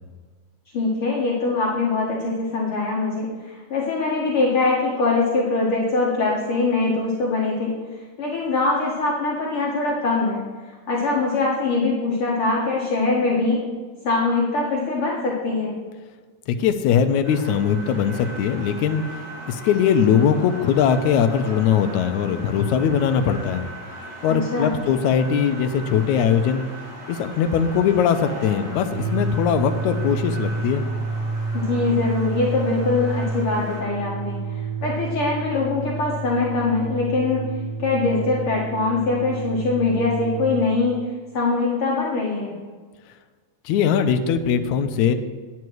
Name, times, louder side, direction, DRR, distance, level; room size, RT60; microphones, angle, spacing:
voice 1, 0.7-7.8 8.2-10.4 10.9-13.6 14.0-15.7 24.3-24.7 31.5-37.4 37.8-41.0 41.3-42.6, left 3 dB, 55° left, -4 dB, 2.1 m, -23 dB
voice 2, 16.5-19.0 19.5-23.6 24.2-26.6 27.1-30.8 43.7-45.2, left 7 dB, 85° left, 7 dB, 2.0 m, -20 dB
sound 1, 17.2-33.8, right 1 dB, 30° right, 2.2 m, -39 dB
sound 2, 28.9-40.7, right 3 dB, 80° right, 2.5 m, -29 dB
9.6 x 9.4 x 4.6 m, 1.5 s
omnidirectional pair, 3.4 m